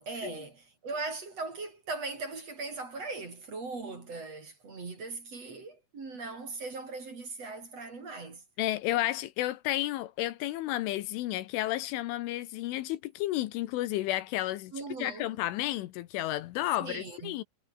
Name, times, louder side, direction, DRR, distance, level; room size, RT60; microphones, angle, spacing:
voice 1, 0.0-8.4 14.7-15.3 16.8-17.4, right 3 dB, 35° right, 4.5 m, -39 dB
voice 2, 8.6-14.7 15.0-17.4, left 15 dB, 75° left, 3.3 m, -32 dB
omnidirectional pair, 5.9 m